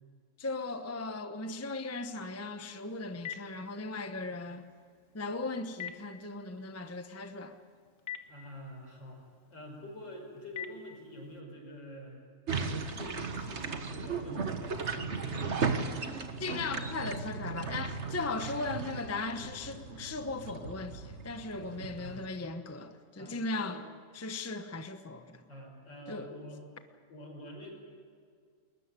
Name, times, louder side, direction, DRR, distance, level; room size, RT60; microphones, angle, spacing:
voice 1, 0.4-4.7 5.1-7.6 16.4-23.8 24.1-25.4 26.1-26.3, left 3 dB, 10° left, 8 dB, 0.7 m, -37 dB
Telephone, 2.5-11.4, left 10 dB, 40° left, 1.4 m, -49 dB
voice 2, 8.3-9.2 9.5-12.2 12.8-15.6 22.0-22.2 23.1-23.8 25.5-26.6 27.1-27.7, equal, 70° left, 1 dB, 6.3 m, -46 dB
sound 1, 12.5-22.3, right 5 dB, 40° right, 1.5 m, -36 dB
21.0 x 20.5 x 9.9 m, 2.1 s
omnidirectional pair, 2.0 m